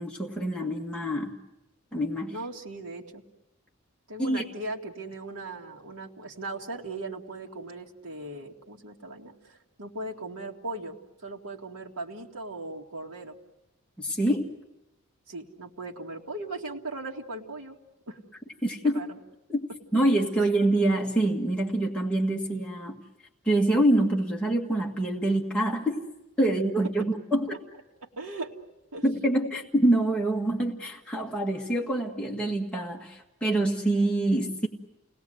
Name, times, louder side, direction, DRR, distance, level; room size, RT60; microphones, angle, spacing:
voice 1, 0.0-1.3 1.9-2.3 4.2-4.4 14.0-14.5 18.6-19.0 19.5-23.0 23.5-26.0 26.4-27.6 29.0-34.7, right 1 dB, 5° left, -3 dB, 1.9 m, -26 dB
voice 2, 2.3-3.2 4.1-13.4 15.3-17.8 18.1-18.2 18.9-19.2 28.0-28.5 28.9-29.0, right 2 dB, 85° right, -1 dB, 2.1 m, -38 dB
29.5 x 19.0 x 7.9 m, 0.97 s
head